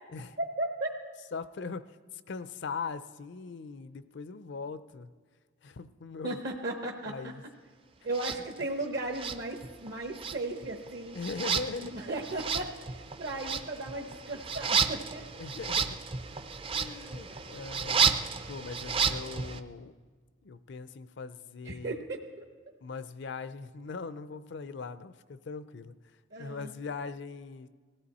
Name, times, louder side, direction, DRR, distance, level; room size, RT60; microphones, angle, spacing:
voice 1, 0.4-0.9 6.2-7.2 8.0-11.2 11.8-15.2 17.3-17.4 21.6-22.5 26.3-26.7, right 2 dB, 55° right, 2 dB, 0.9 m, -36 dB
voice 2, 1.3-2.0 2.3-5.1 5.6-6.4 7.1-7.4 11.1-12.0 15.4-16.0 16.7-19.9 20.4-22.0 22.8-25.9 26.3-27.7, left 4 dB, 60° left, 14 dB, 0.5 m, -40 dB
sound 1, 8.1-8.4 9.1-9.9 10.1-19.6, right 6 dB, 25° right, 0.5 m, -32 dB
19.0 x 15.0 x 4.2 m, 1.5 s
head